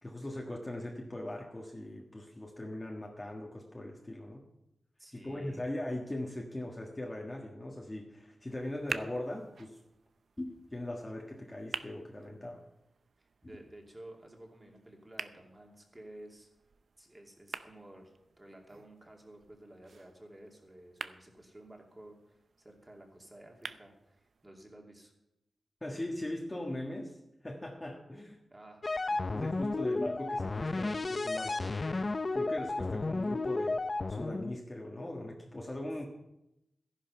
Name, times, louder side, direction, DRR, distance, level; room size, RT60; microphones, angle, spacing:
voice 1, 0.0-4.4 5.1-9.8 10.4-12.6 25.8-27.2 27.4-28.4 29.3-33.8 34.1-36.1, left 1 dB, 20° left, 0 dB, 1.6 m, -40 dB
voice 2, 5.0-5.6 13.2-16.5 17.0-25.1 28.5-28.8, right 1 dB, 20° right, 1 dB, 2.7 m, -53 dB
sound 1, 8.5-24.5, right 5 dB, 65° right, 0.6 m, -48 dB
sound 2, 28.8-34.6, left 3 dB, 35° left, 0.5 m, -33 dB
14.0 x 10.5 x 5.6 m, 0.86 s
wide cardioid pair, 120°, 0 cm